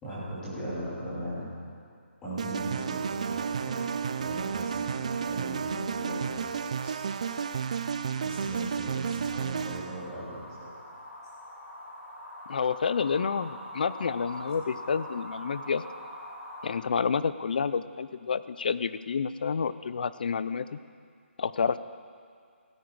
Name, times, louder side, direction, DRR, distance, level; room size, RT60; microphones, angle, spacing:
voice 1, 0.0-1.5 2.2-7.4 8.2-10.7, right 1 dB, 10° left, -11 dB, 3.1 m, -39 dB
sound 1, 2.4-10.0, right 6 dB, 30° right, 0.3 m, -32 dB
sound 2, 2.7-16.8, left 1 dB, 70° left, 2.7 m, -46 dB
voice 2, 12.5-15.8 16.6-20.8 21.4-21.8, left 6 dB, 45° left, 14 dB, 0.4 m, -29 dB
16.5 x 9.6 x 4.7 m, 2.2 s
hypercardioid pair, 170°, 7 cm